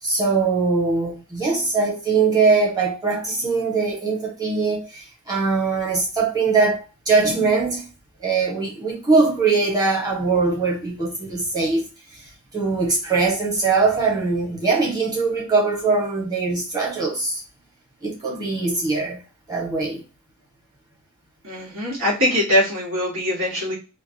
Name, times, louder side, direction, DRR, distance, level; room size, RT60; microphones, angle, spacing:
voice 1, 0.0-7.9 8.2-11.9 12.1-17.4 18.0-19.2 19.5-20.0, right 4 dB, 15° right, 1.4 m, -21 dB
voice 2, 21.4-23.8, left 1 dB, 65° right, 2.0 m, -22 dB
3.6 x 2.5 x 2.9 m
head